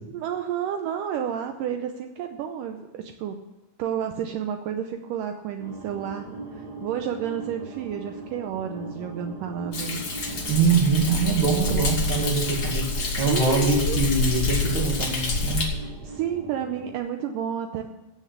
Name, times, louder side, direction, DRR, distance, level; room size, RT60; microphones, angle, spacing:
voice 1, 0.1-3.4 3.8-10.0 11.8-11.9 12.2-12.3 13.3-14.0 15.7-17.8, right 9 dB, 80° right, 5 dB, 2.1 m, -31 dB
sound 1, 5.6-17.0, right 3 dB, 55° right, 1.0 m, -40 dB
Thunder, 9.7-15.6, left 3 dB, 40° left, 1.5 m, -27 dB
voice 2, 10.5-12.8 13.2-15.6, right 4 dB, 40° right, 2 dB, 2.1 m, -23 dB
16.0 x 6.7 x 7.1 m, 1.1 s
omnidirectional pair, 4.3 m